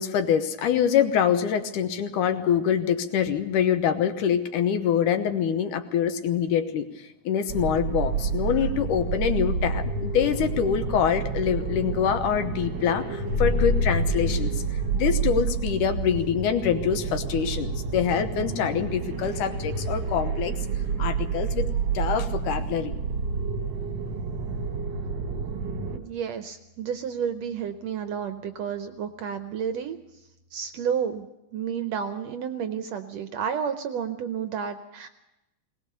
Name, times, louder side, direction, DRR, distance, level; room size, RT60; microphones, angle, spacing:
voice 1, 0.0-6.9 7.2-14.6 14.9-20.6 21.0-21.7 21.9-22.9, left 8 dB, 80° left, 9 dB, 2.5 m, -25 dB
sound 1, 7.5-26.0, right 5 dB, 50° right, 1.5 m, -29 dB
sound 2, 13.3-24.5, equal, 55° left, 1.7 m, -34 dB
voice 2, 25.9-30.0 30.5-35.1, right 7 dB, 70° right, 8 dB, 1.7 m, -31 dB
20.0 x 19.0 x 6.8 m, 0.94 s
omnidirectional pair, 3.7 m